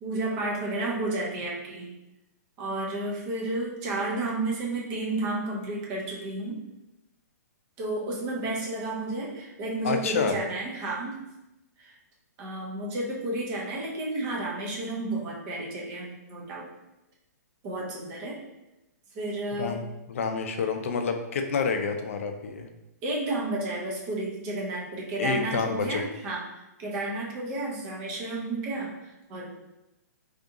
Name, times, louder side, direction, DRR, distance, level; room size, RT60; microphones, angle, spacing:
voice 1, 0.0-1.9 2.6-6.6 7.8-11.2 11.8-11.9 12.4-16.7 17.6-18.4 19.1-19.8 23.0-26.4 26.8-28.9 29.3-29.5, right 2 dB, 20° right, -3 dB, 0.5 m, -31 dB
voice 2, 9.8-10.4 19.6-22.7 25.2-26.1, left 5 dB, 50° left, 6 dB, 0.4 m, -28 dB
3.6 x 2.7 x 2.5 m, 0.95 s
hypercardioid pair, 175°, 9 cm